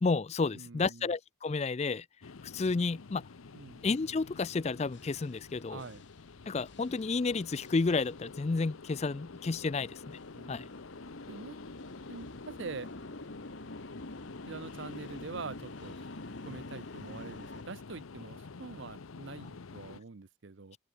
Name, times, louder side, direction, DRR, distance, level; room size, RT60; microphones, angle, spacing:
voice 1, 0.0-2.1 2.4-3.2 3.8-5.8 6.5-10.2 10.5-10.7, left 4 dB, 30° left, 0.4 m, -31 dB
voice 2, 0.5-1.1 3.5-3.8 5.7-6.0 10.3-10.7 11.3-11.6 12.1-12.9 14.5-16.0 16.5-20.8, right 4 dB, 65° right, 0.7 m, -44 dB
sound 1, 2.2-20.0, left 4 dB, 85° left, 0.7 m, -48 dB
sound 2, 3.3-17.6, left 1 dB, 60° left, 2.9 m, -49 dB
open air
head